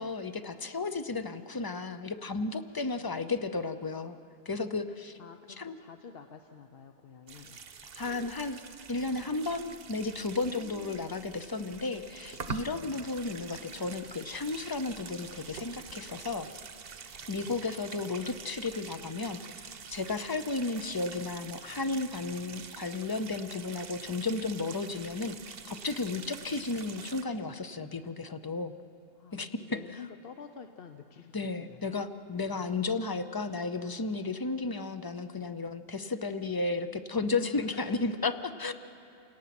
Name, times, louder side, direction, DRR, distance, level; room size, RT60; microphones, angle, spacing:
voice 1, 0.0-4.2 4.5-5.2 5.6-5.8 8.0-8.6 8.9-16.5 17.3-19.4 19.9-25.4 25.7-28.7 29.3-29.8 31.3-38.7, left 3 dB, 25° left, 10 dB, 0.5 m, -33 dB
voice 2, 3.0-3.4 5.2-7.6 10.4-11.1 12.7-13.0 17.3-17.5 26.4-26.8 29.1-31.3 31.6-32.0 32.5-33.0 37.4-38.0, left 6 dB, 60° left, 6 dB, 0.9 m, -49 dB
sound 1, 7.3-27.2, right 6 dB, 60° right, 1.0 m, -46 dB
28.5 x 18.0 x 5.9 m, 2.7 s
omnidirectional pair, 1.2 m